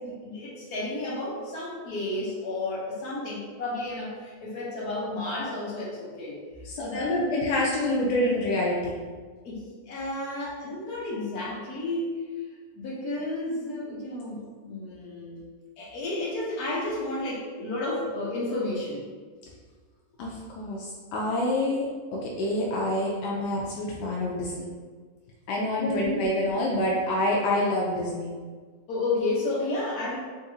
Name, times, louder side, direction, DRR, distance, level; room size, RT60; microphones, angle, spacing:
voice 1, 0.0-6.4 6.8-7.1 9.4-12.2 12.7-15.4 15.8-19.1 25.8-26.3 28.9-30.2, left 2 dB, 65° left, -6 dB, 1.4 m, -32 dB
voice 2, 6.6-9.0 20.2-24.7 25.5-28.3, left 1 dB, 85° left, -3 dB, 1.2 m, -27 dB
3.8 x 2.8 x 2.7 m, 1.5 s
omnidirectional pair, 1.7 m